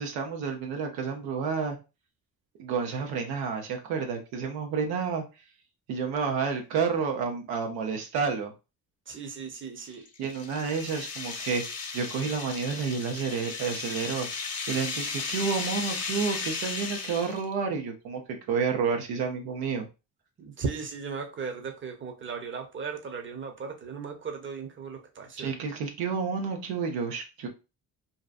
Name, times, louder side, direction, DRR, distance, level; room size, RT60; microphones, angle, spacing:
voice 1, 0.0-1.8 2.6-5.2 5.9-8.5 10.2-11.6 11.9-18.2 18.5-19.9 25.4-27.5, right 5 dB, 85° right, 0.7 m, -30 dB
voice 2, 9.1-10.0 20.4-25.5, right 5 dB, 35° right, 0.8 m, -37 dB
sound 1, 9.8-17.5, left 4 dB, 45° left, 0.8 m, -35 dB
2.7 x 2.3 x 2.4 m
supercardioid pair, 60°, 37 cm